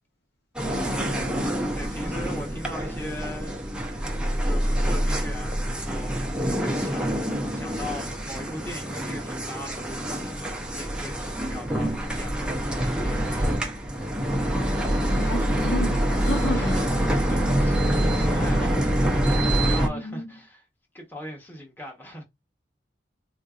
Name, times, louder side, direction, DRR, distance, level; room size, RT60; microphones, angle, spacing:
sound 1, 0.6-19.9, right 1 dB, 5° right, 0.6 m, -26 dB
voice 1, 0.7-1.6 15.2-16.7 19.8-20.2, left 1 dB, 60° left, 0.8 m, -32 dB
voice 2, 1.7-3.8 4.4-13.8 16.4-17.8 18.2-20.7 20.9-22.2, left 1 dB, 10° left, 1.0 m, -40 dB
3.9 x 2.6 x 2.4 m
head